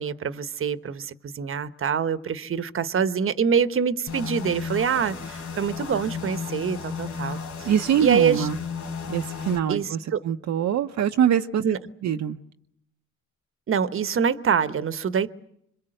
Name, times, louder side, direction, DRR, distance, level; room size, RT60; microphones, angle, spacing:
voice 1, 0.0-7.7 8.0-8.5 9.7-10.2 11.6-11.8 13.7-15.3, right 7 dB, 45° right, 1.1 m, -25 dB
sound 1, 4.1-9.6, left 6 dB, 75° left, 3.7 m, -34 dB
voice 2, 7.7-8.6 9.1-10.0 10.2-11.6 12.0-12.4, right 9 dB, 65° right, 0.9 m, -23 dB
26.5 x 23.0 x 7.8 m
cardioid pair, 90°, 30 cm